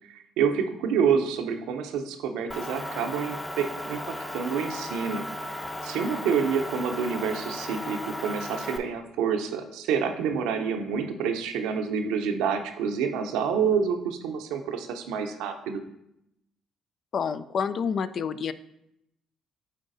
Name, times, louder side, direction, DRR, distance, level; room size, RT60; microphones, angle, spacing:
voice 1, 0.1-4.0 4.3-5.3 5.8-15.8, right 6 dB, 80° right, 6 dB, 0.6 m, -28 dB
Motor vehicle (road) / Engine, 2.5-8.8, left 1 dB, 15° left, 0.7 m, -35 dB
voice 2, 17.1-18.5, left 6 dB, 55° left, 13 dB, 0.3 m, -28 dB
10.0 x 3.9 x 2.6 m, 0.81 s
hypercardioid pair, 60°, 0 cm